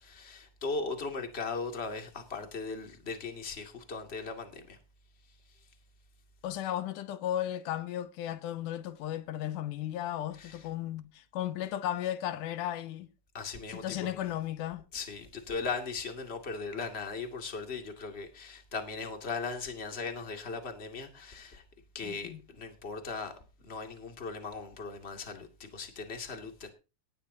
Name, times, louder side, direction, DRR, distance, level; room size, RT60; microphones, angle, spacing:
voice 1, 0.0-4.8 5.5-5.6 10.4-10.6 13.3-14.1 14.9-21.6 21.9-26.7, left 4 dB, 20° left, 2.2 m, -38 dB
voice 2, 6.4-13.1 13.7-14.9 22.0-22.4, left 12 dB, 85° left, 2.5 m, -35 dB
18.0 x 14.0 x 2.8 m
omnidirectional pair, 3.6 m